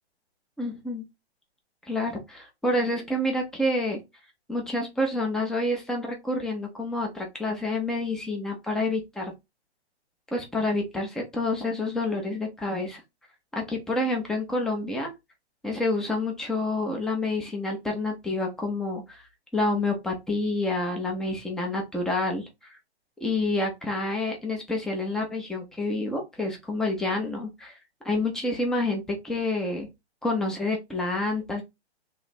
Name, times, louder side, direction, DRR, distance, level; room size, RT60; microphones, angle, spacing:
voice 1, 0.6-1.1 1.9-4.0 4.5-9.3 10.3-13.0 13.5-15.1 15.6-19.2 19.5-22.8 23.2-27.7 28.0-29.9 30.2-31.6, left 2 dB, ahead, 0.5 m, -28 dB
3.1 x 2.4 x 4.1 m
hypercardioid pair, 135°, 33 cm